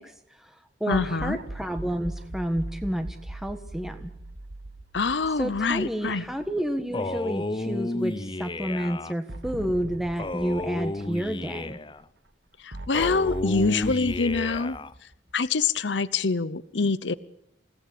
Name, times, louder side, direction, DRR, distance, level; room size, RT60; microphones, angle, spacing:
voice 1, 0.0-4.1 5.4-11.8, equal, ahead, 6 dB, 1.4 m, -30 dB
voice 2, 0.9-1.4 4.9-6.2 12.6-14.8 15.3-17.1, left 4 dB, 75° left, 16 dB, 0.9 m, -25 dB
sound 1, 0.9-7.2 7.6-7.7 9.3-11.8 12.7-15.5, right 1 dB, 70° right, 2.0 m, -40 dB
Male speech man speaking, 6.9-9.1 10.2-12.0 12.9-14.9, left 2 dB, 25° left, 0.9 m, -32 dB
29.0 x 18.0 x 8.5 m, 0.76 s
head